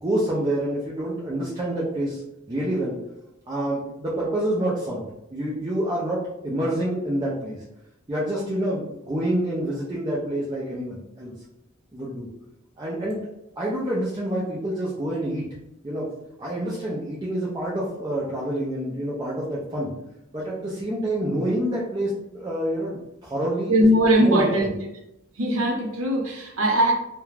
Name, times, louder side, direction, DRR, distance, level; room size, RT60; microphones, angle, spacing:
voice 1, 0.0-2.2 2.5-3.0 3.5-5.0 5.3-7.6 8.1-11.3 11.9-12.3 12.8-13.2 13.6-15.5 15.8-16.1 16.4-19.9 20.3-23.9 24.2-24.6, right 1 dB, 20° right, -6 dB, 0.4 m, -27 dB
voice 2, 23.7-24.7 25.4-26.9, equal, 90° right, 0 dB, 0.7 m, -20 dB
2.3 x 2.1 x 3.2 m, 0.87 s
head